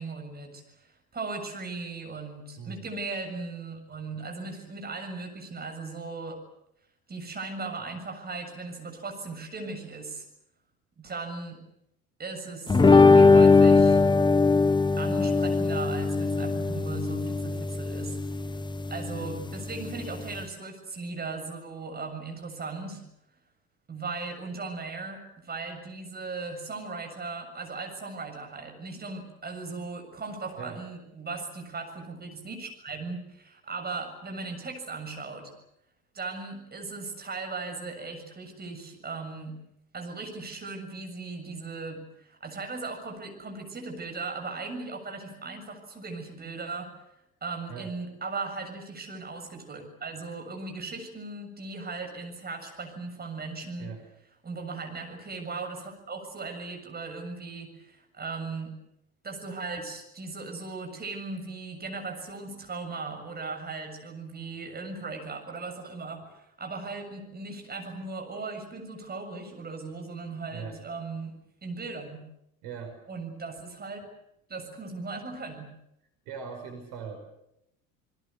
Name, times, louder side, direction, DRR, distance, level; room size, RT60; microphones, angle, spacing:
voice 1, 0.0-6.4 7.1-10.2 11.0-11.6 12.2-14.0 15.0-18.6 18.9-23.0 23.9-35.5 36.1-39.6 39.9-46.9 47.4-53.9 54.4-58.7 59.2-71.3 71.6-72.3 73.1-74.0 74.5-75.7, right 3 dB, 20° right, 4 dB, 7.2 m, -38 dB
sound 1, 12.7-20.4, left 4 dB, 10° left, 0.9 m, -20 dB
voice 2, 70.5-70.8 72.6-73.0 76.3-77.2, right 6 dB, 50° right, 5 dB, 5.4 m, -40 dB
28.5 x 21.0 x 8.1 m, 0.83 s
figure-of-eight pair, 70°, 43 cm